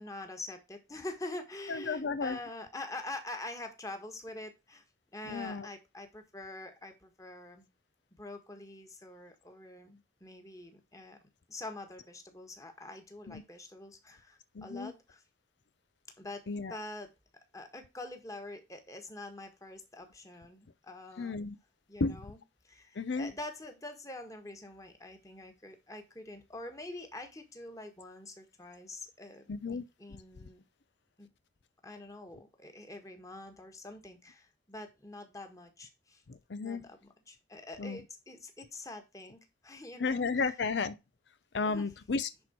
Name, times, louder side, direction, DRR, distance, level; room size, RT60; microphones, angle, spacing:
voice 1, 0.0-4.8 5.1-7.7 8.2-11.2 11.5-15.2 16.2-17.1 17.5-21.4 21.9-30.6 31.2-31.3 31.8-36.2 36.6-40.5 41.6-41.9, left 2 dB, 20° left, 1.6 m, -45 dB
voice 2, 1.7-2.4 5.3-5.7 13.3-13.4 14.6-14.9 16.5-16.8 21.2-21.6 22.0-22.2 23.0-23.3 29.5-29.8 36.3-36.8 37.8-38.0 40.0-41.0 41.5-42.3, left 4 dB, 75° left, 0.5 m, -33 dB
10.5 x 4.4 x 4.4 m
head